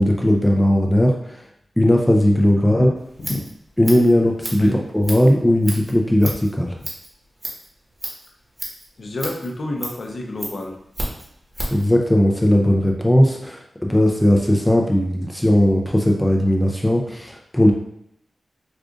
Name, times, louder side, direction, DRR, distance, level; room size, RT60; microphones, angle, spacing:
voice 1, 0.0-1.4 1.8-2.9 3.8-6.8 11.7-17.7, left 1 dB, 5° left, 1 dB, 0.5 m, -17 dB
voice 2, 2.6-3.5 4.6-4.8 9.0-10.8, left 1 dB, 65° left, 2 dB, 0.6 m, -29 dB
Scissors, 3.0-11.9, right 1 dB, 20° right, 1.2 m, -34 dB
4.8 x 2.5 x 2.5 m, 0.73 s
wide cardioid pair, 75°, 0 cm